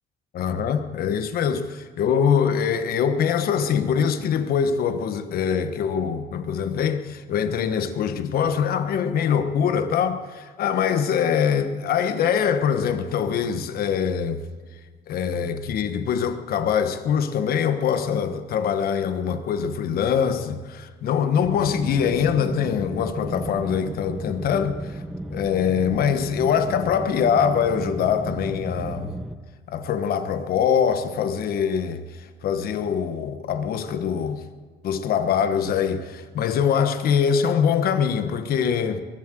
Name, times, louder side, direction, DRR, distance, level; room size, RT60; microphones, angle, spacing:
voice 1, 0.3-14.5 15.1-25.0 25.3-29.1 29.7-34.4 34.8-39.0, left 7 dB, 65° left, 1.3 m, -23 dB
sound 1, 21.4-29.4, right 1 dB, ahead, 0.8 m, -34 dB
21.5 x 7.7 x 7.6 m
cardioid pair, 110°, 17 cm